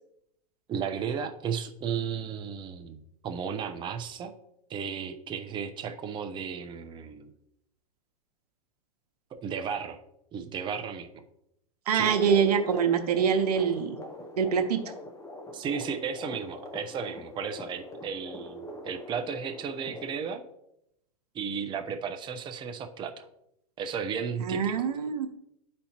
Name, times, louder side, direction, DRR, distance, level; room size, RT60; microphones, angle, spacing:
voice 1, 0.7-4.3 4.7-7.3 9.3-10.0 10.3-11.2 11.9-12.1 15.5-20.4 21.3-23.2 23.8-24.9, right 6 dB, 25° right, 5 dB, 0.6 m, -34 dB
voice 2, 11.9-14.0 14.4-14.8 24.4-25.3, right 7 dB, 85° right, 6 dB, 1.0 m, -25 dB
sound 1, 12.0-20.1, left 1 dB, 15° left, 0.9 m, -42 dB
11.5 x 4.3 x 2.9 m, 0.79 s
hypercardioid pair, 115°, 20 cm